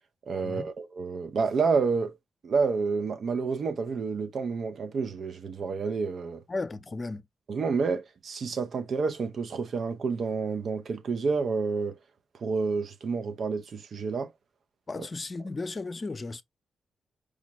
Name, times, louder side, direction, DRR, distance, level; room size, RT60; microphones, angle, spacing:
voice 1, 0.3-2.1 2.4-6.4 7.5-12.0 12.4-14.3, right 4 dB, 65° right, 0.7 m, -29 dB
voice 2, 6.5-7.3 14.9-16.4, left 3 dB, 40° left, 0.6 m, -35 dB
5.0 x 2.1 x 2.9 m
supercardioid pair, 45°, 0 cm